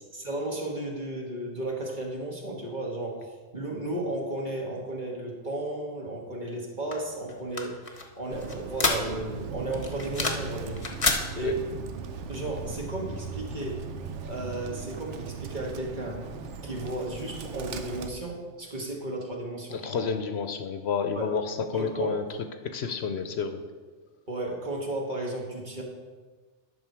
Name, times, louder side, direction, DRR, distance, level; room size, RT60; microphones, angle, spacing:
voice 1, 0.1-7.7 8.2-10.8 11.3-11.7 12.3-16.2 16.6-20.1 21.1-21.3 21.7-22.2 24.3-25.8, right 1 dB, 40° right, -1 dB, 1.6 m, -34 dB
sound 1, 6.9-9.4 9.7-10.5 10.8-11.2, left 3 dB, 30° left, 0.9 m, -28 dB
Bird, 8.3-18.1, right 5 dB, 85° right, 1.0 m, -38 dB
voice 2, 19.7-22.2 22.6-23.6, left 6 dB, 70° left, 7 dB, 0.9 m, -30 dB
11.0 x 6.2 x 4.5 m, 1.4 s
omnidirectional pair, 1.2 m